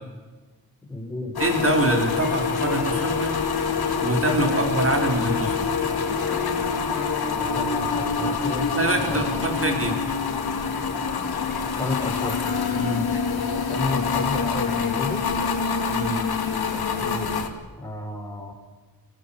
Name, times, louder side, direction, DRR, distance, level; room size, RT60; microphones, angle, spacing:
voice 1, 0.9-1.4 7.5-8.7 9.1-9.4 11.8-12.5 13.5-15.2 16.7-17.4 17.8-18.5, left 2 dB, 10° left, 1 dB, 5.6 m, -32 dB
sound 1, 1.4-17.5, left 5 dB, 90° left, 2.5 m, -26 dB
voice 2, 1.4-3.3 4.0-5.7 8.7-10.1 12.8-13.1 15.9-16.2, right 2 dB, 35° right, 3 dB, 4.7 m, -24 dB
Train, 2.1-17.5, left 4 dB, 65° left, 3.2 m, -41 dB
26.0 x 17.5 x 7.4 m, 1.3 s
wide cardioid pair, 90°, 37 cm